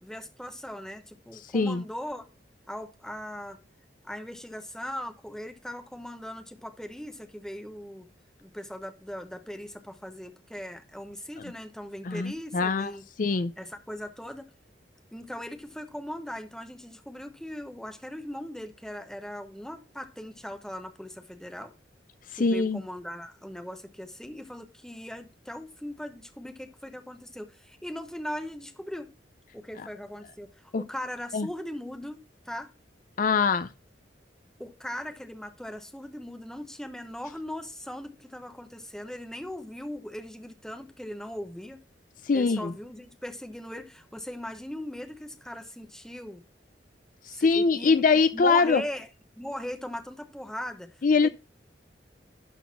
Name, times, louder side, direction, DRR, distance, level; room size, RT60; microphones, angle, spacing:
voice 1, 0.0-2.3 2.7-3.6 4.0-8.1 8.4-13.0 13.6-14.5 15.1-21.7 22.3-29.1 29.5-32.7 34.6-41.8 42.3-46.4 47.3-50.9 51.2-51.3, left 1 dB, 5° left, 1.1 m, -39 dB
voice 2, 1.5-1.8 12.1-12.9 13.2-13.5 22.4-22.8 30.7-30.8 31.3-31.5 33.2-33.7 42.3-42.7 47.3-48.8 51.0-51.3, left 4 dB, 45° left, 0.5 m, -23 dB
12.0 x 4.0 x 6.0 m
head